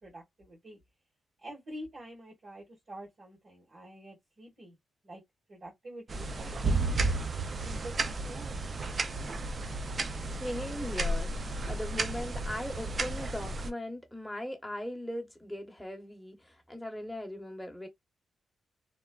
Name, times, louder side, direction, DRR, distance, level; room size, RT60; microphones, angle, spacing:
voice 1, 0.0-0.8 1.4-4.8 5.0-5.2 5.5-7.2 7.6-8.6, right 1 dB, 60° right, 1.7 m, -47 dB
sound 1, 6.1-13.7, right 2 dB, 45° right, 0.3 m, -33 dB
voice 2, 10.4-17.9, left 1 dB, ahead, 0.9 m, -39 dB
3.2 x 2.0 x 2.2 m
cardioid pair, 75°, 0 cm